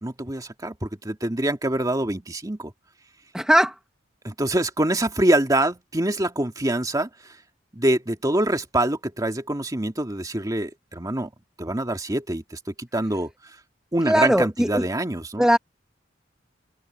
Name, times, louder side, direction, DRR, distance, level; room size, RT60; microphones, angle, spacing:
voice 1, 0.0-2.7 4.2-7.1 7.7-11.3 11.6-13.3 13.9-15.5, right 1 dB, 20° right, 2.0 m, -25 dB
voice 2, 3.3-3.7 14.1-14.7 15.4-15.6, equal, 5° right, 0.9 m, -18 dB
head